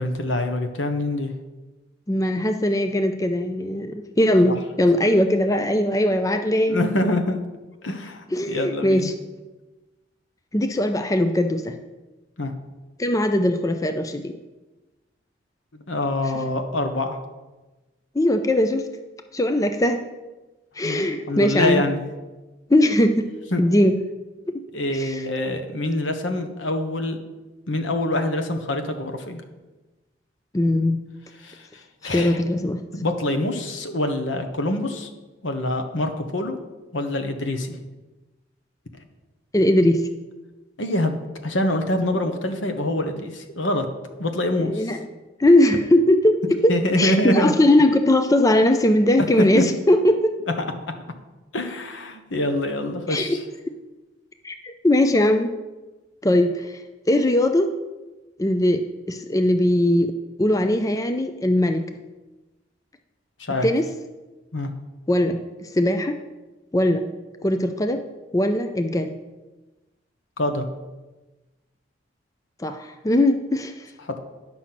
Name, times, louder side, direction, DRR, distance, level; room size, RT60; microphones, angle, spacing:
voice 1, 0.0-1.3 4.4-4.5 6.7-7.4 7.8-9.1 12.4-12.5 15.9-17.2 20.8-22.0 23.5-23.6 24.7-27.2 27.7-29.4 31.4-31.7 32.0-32.4 32.9-35.1 35.4-36.6 36.9-37.8 40.8-41.2 41.4-43.8 44.2-44.9 46.7-47.5 49.4-49.6 51.5-53.4 63.4-63.7 64.5-64.7 70.4-70.7 74.0-74.2, left 1 dB, 80° left, 6 dB, 1.2 m, -25 dB
voice 2, 2.1-6.8 8.3-9.1 10.5-11.7 13.0-14.3 18.1-18.9 19.3-20.1 20.8-21.8 22.7-23.2 23.6-23.9 24.9-25.2 30.5-31.0 32.1-32.8 39.5-40.0 44.6-45.0 45.4-50.4 53.1-53.4 54.4-55.5 56.2-56.8 57.1-57.7 58.4-58.8 59.1-60.1 60.4-61.8 63.6-63.9 65.1-66.2 66.7-67.1 67.4-68.0 68.3-69.1 72.6-73.9, left 1 dB, 20° left, 7 dB, 0.5 m, -20 dB
10.0 x 6.2 x 5.9 m, 1.1 s
head